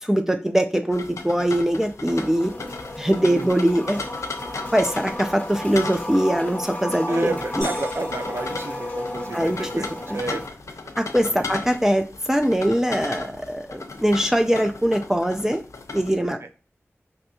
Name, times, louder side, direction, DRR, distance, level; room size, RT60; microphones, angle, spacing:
voice 1, 0.0-2.5 3.0-4.1 4.7-7.7 9.3-9.8 10.1-10.2 11.0-15.6 15.9-16.4, equal, 10° right, 5 dB, 0.3 m, -22 dB
sound 1, 0.9-16.1, left 4 dB, 90° left, 0.3 m, -36 dB
sound 2, 2.1-10.5, left 1 dB, 30° left, 0.7 m, -33 dB
voice 2, 3.2-3.6 7.1-10.4 11.3-11.5 16.4-16.5, right 3 dB, 60° right, 6 dB, 0.5 m, -31 dB
sound 3, 7.6-9.6, equal, 85° right, 1.8 m, -41 dB
3.3 x 2.6 x 2.7 m, 0.35 s
wide cardioid pair, 45°, 5 cm